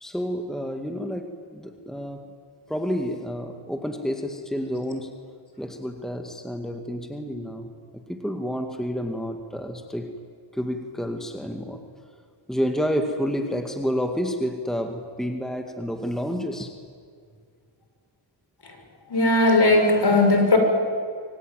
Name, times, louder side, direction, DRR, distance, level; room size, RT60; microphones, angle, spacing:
voice 1, 0.0-2.3 2.7-5.1 5.6-7.7 8.1-10.1 10.5-11.8 12.5-16.7, equal, ahead, 5 dB, 2.0 m, -29 dB
voice 2, 19.1-20.6, left 2 dB, 50° left, 3 dB, 6.1 m, -18 dB
26.0 x 23.5 x 9.4 m, 2.2 s
wide cardioid pair, 85°, 49 cm